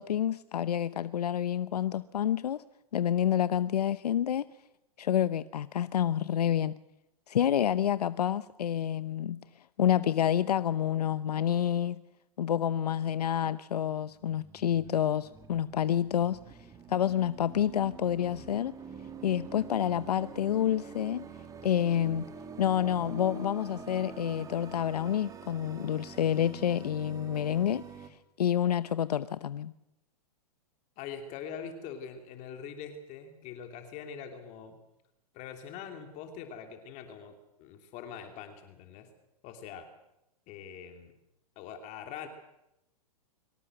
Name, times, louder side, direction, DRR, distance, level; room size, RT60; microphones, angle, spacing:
voice 1, 0.0-2.6 2.9-4.5 5.0-6.7 7.3-9.4 9.8-12.0 12.4-16.6 16.9-18.7 19.2-21.3 21.6-22.2 22.6-27.8 28.4-29.7, left 10 dB, 85° left, 0.8 m, -28 dB
sound 1, 14.0-28.1, right 6 dB, 15° right, 2.5 m, -46 dB
voice 2, 31.0-34.8 35.3-39.1 39.4-39.9 40.5-41.1 41.6-42.3, left 7 dB, 35° left, 3.0 m, -43 dB
23.5 x 18.0 x 7.8 m
hypercardioid pair, 130°, 20 cm